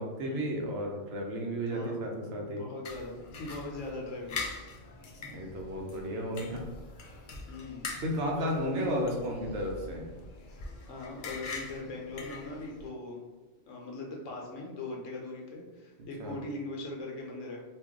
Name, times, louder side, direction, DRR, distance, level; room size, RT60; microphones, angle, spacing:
voice 1, 0.0-2.6 5.2-6.7 8.0-10.1 16.2-16.4, equal, 65° right, 0 dB, 0.8 m, -33 dB
voice 2, 1.7-2.0 2.4-4.4 7.5-7.9 8.4-9.0 10.9-13.2 13.7-17.6, left 2 dB, 80° left, -1 dB, 1.0 m, -40 dB
sound 1, 2.8-12.9, left 3 dB, 60° left, 0.5 m, -43 dB
2.5 x 2.2 x 3.5 m, 1.3 s
omnidirectional pair, 1.3 m